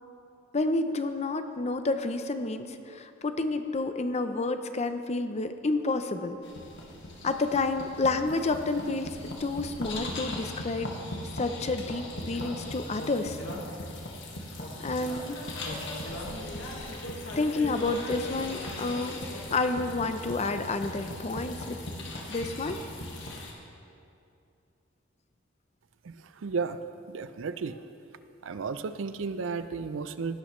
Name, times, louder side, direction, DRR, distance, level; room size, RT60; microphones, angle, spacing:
voice 1, 0.5-6.4 7.2-10.9 11.3-13.4 14.8-15.4 17.3-19.2 19.5-21.8 22.3-22.8, left 3 dB, 35° left, 9 dB, 0.6 m, -29 dB
sound 1, 6.4-23.5, left 1 dB, 65° left, 1.7 m, -38 dB
voice 2, 26.4-26.8 27.1-27.8 28.4-30.4, right 5 dB, 70° right, 12 dB, 0.5 m, -33 dB
17.0 x 11.0 x 3.1 m, 2.7 s
head